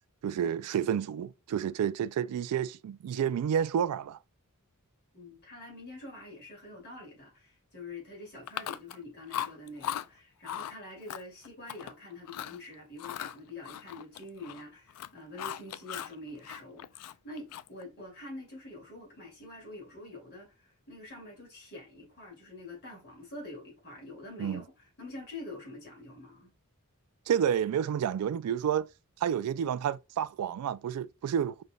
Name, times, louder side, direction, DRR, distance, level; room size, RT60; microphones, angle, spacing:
voice 1, 0.2-4.2 24.4-24.6 27.3-28.9 29.2-31.5, right 8 dB, 85° right, 0.3 m, -30 dB
voice 2, 5.1-26.5, left 2 dB, 50° left, 2.7 m, -46 dB
Chewing mastication, 8.5-9.0 9.3-10.1 10.4-10.7 11.1-11.9 12.3-12.6 13.0-14.6 14.9-16.2 16.4-17.8, left 10 dB, 90° left, 0.3 m, -38 dB
5.2 x 3.3 x 2.3 m
head